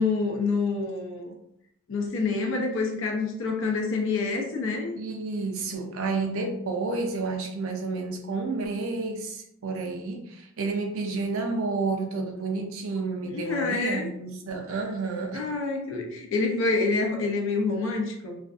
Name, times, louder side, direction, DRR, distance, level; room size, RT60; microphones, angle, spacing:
voice 1, 0.0-1.3 1.9-5.0 13.3-14.1 15.3-18.4, left 3 dB, 55° left, 1 dB, 0.5 m, -27 dB
voice 2, 5.0-15.4, right 3 dB, 65° right, 3 dB, 0.4 m, -30 dB
2.5 x 2.3 x 2.4 m, 0.77 s
head